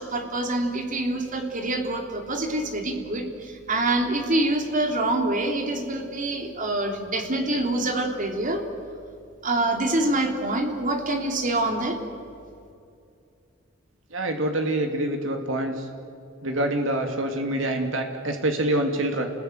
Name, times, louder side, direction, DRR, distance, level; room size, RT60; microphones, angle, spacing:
voice 1, 0.0-8.6 9.4-12.0, right 2 dB, 40° right, 3 dB, 3.3 m, -26 dB
voice 2, 14.1-15.9 16.4-19.3, right 1 dB, 75° right, 4 dB, 2.8 m, -26 dB
29.5 x 21.0 x 9.3 m, 2.5 s
head